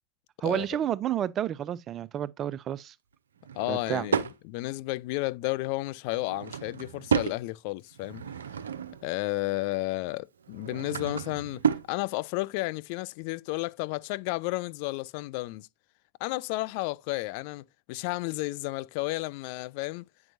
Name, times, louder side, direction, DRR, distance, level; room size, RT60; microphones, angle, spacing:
voice 1, 0.4-2.9 3.7-4.1, right 10 dB, 30° right, 0.4 m, -30 dB
Drawer open or close / Wood, 3.4-4.4 6.1-7.4 7.9-9.1 10.4-11.9, right 7 dB, 65° right, 0.6 m, -31 dB
voice 2, 3.5-8.2 9.0-11.6 11.9-15.7 16.2-20.1, left 21 dB, 45° left, 0.4 m, -32 dB
8.9 x 5.9 x 2.6 m
figure-of-eight pair, 90°, 0 cm